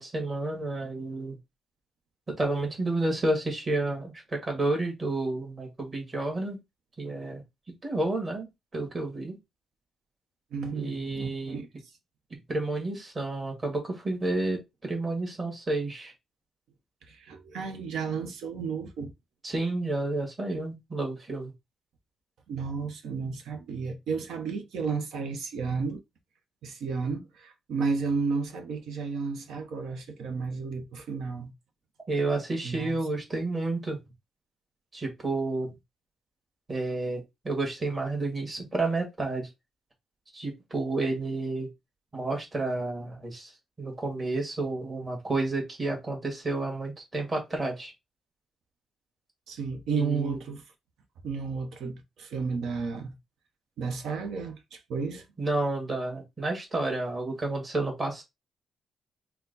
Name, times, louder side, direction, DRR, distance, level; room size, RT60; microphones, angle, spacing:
voice 1, 0.0-1.4 2.3-6.6 7.0-7.4 7.8-9.4 10.7-11.6 12.5-16.1 19.4-21.5 32.1-34.0 34.9-35.7 36.7-39.5 40.3-41.7 42.1-43.5 43.8-47.9 50.0-50.4 55.4-58.2, right 2 dB, 25° right, 1.8 m, -30 dB
voice 2, 10.5-11.7 17.1-19.1 22.5-26.0 26.6-31.5 32.6-33.0 49.5-50.6 51.2-53.1 53.8-55.2, right 5 dB, 85° right, 1.0 m, -32 dB
4.5 x 2.2 x 4.0 m
cardioid pair, 125°, 0 cm